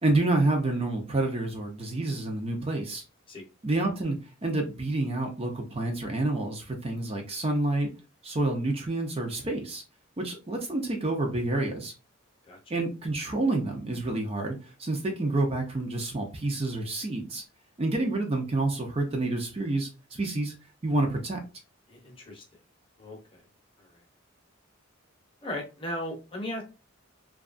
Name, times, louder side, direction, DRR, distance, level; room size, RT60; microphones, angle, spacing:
voice 1, 0.0-3.0 3.6-4.2 4.4-7.9 8.2-9.8 10.2-11.9 12.7-17.4 17.8-20.5 20.8-21.4, right 2 dB, 30° right, 2 dB, 0.5 m, -28 dB
voice 2, 21.9-22.4 23.0-23.4 23.8-24.0 25.4-26.6, left 1 dB, 25° left, 0 dB, 0.7 m, -37 dB
2.7 x 2.3 x 2.4 m, 0.31 s
head